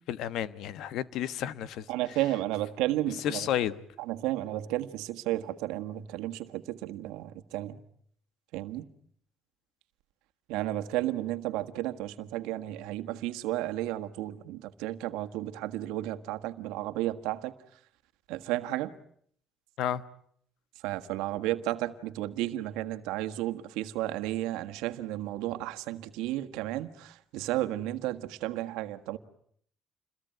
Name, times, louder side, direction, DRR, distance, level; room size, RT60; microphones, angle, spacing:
voice 1, 0.1-1.9 3.1-3.8 19.8-20.0, left 11 dB, 75° left, 1.3 m, -31 dB
voice 2, 1.9-3.5 4.1-7.8 8.5-8.8 10.5-17.5 18.3-18.9 20.8-29.2, right 15 dB, 90° right, 1.6 m, -33 dB
28.5 x 22.0 x 9.3 m
cardioid pair, 95°, 0 cm